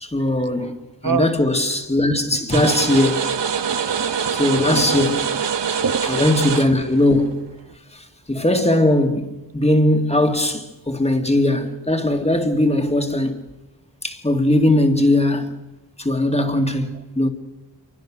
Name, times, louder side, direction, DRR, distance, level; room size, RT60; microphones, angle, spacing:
voice 1, 0.0-3.3 4.3-5.2 6.0-7.4 8.3-13.4 14.0-15.5 16.0-17.3, left 1 dB, 15° left, 2.4 m, -19 dB
sound 1, 2.5-7.7, right 7 dB, 70° right, 1.4 m, -24 dB
voice 2, 3.7-5.4 5.8-6.0, right 6 dB, 50° right, 1.3 m, -27 dB
28.0 x 24.5 x 6.3 m
wide cardioid pair, 105°, 43 cm